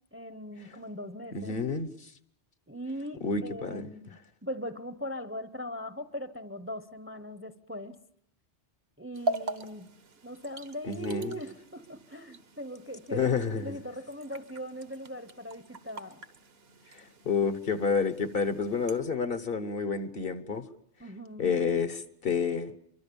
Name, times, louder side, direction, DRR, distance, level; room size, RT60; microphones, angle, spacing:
voice 1, 0.0-1.5 2.7-8.0 9.0-9.9 10.2-16.2 21.0-21.6, equal, 15° right, 0.8 m, -40 dB
voice 2, 1.3-1.9 3.2-3.9 10.8-11.3 13.1-13.7 16.9-20.6 21.4-22.7, left 5 dB, 55° left, 1.3 m, -29 dB
sound 1, 9.1-19.0, right 1 dB, 60° right, 1.4 m, -41 dB
25.0 x 24.0 x 7.0 m
omnidirectional pair, 1.1 m